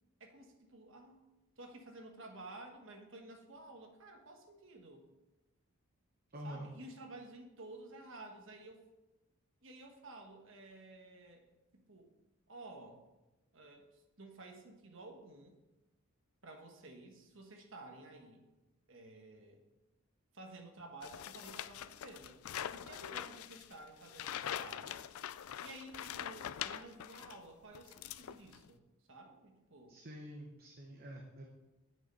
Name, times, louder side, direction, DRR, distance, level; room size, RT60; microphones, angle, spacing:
voice 1, 0.2-1.2 1.6-5.1 6.4-8.8 9.6-11.4 11.9-12.1 12.5-13.0 13.5-15.6 16.4-18.4 18.9-19.6 20.3-22.4 22.7-25.1 25.6-28.8 29.1-30.0, right 2 dB, 60° right, 2 dB, 1.3 m, -53 dB
voice 2, 6.3-6.7 29.9-31.5, equal, 45° right, 1 dB, 1.0 m, -47 dB
sound 1, 21.0-27.4 27.7-28.7, left 10 dB, 80° left, 0.4 m, -44 dB
8.8 x 6.8 x 5.5 m, 1.0 s
head